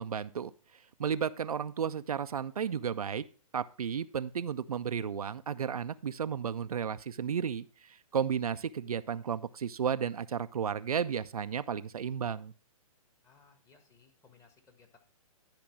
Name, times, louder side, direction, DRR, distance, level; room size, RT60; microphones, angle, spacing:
voice 1, 0.0-3.3 3.5-12.5, right 7 dB, 85° right, 0.4 m, -33 dB
voice 2, 13.2-15.0, left 5 dB, 15° left, 1.3 m, -62 dB
10.5 x 5.1 x 4.5 m
hypercardioid pair, 125°, 19 cm